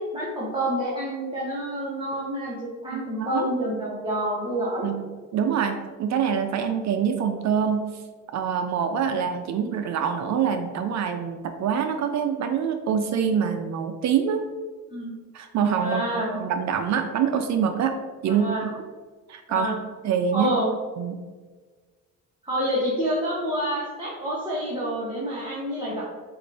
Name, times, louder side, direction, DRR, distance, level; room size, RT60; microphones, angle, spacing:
voice 1, 0.0-2.6 2.8-4.9 14.9-15.1 15.8-16.4 18.3-18.7 19.5-19.8 20.3-20.7 22.4-26.0, equal, 15° right, -7 dB, 1.2 m, -28 dB
voice 2, 2.9-3.5 4.8-5.0 5.3-8.0 8.3-14.4 15.3-18.0 18.2-18.7 19.3-19.8 20.0-20.5 21.0-21.2, right 7 dB, 65° right, 7 dB, 0.4 m, -25 dB
5.0 x 2.5 x 3.3 m, 1.4 s
cardioid pair, 90°, 30 cm